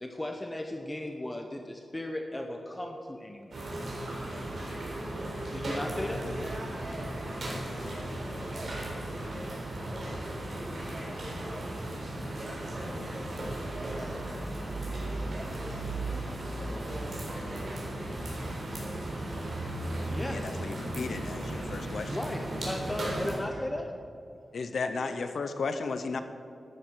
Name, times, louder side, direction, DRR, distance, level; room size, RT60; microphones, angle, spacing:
voice 1, 0.0-3.6 5.5-6.2 20.0-20.6 22.1-23.9, left 1 dB, 15° left, 4 dB, 0.8 m, -36 dB
sound 1, 3.5-23.4, right 1 dB, 55° right, 4.0 m, -36 dB
voice 2, 5.7-7.1 7.4-10.4 10.7-11.8 12.4-14.4 14.9-18.1 23.3-23.7 25.0-25.3, equal, 40° right, -3 dB, 3.3 m, -45 dB
voice 3, 20.3-22.2 24.5-26.2, left 4 dB, 65° left, 9 dB, 0.8 m, -34 dB
12.5 x 10.0 x 6.3 m, 2.5 s
wide cardioid pair, 170°, 0 cm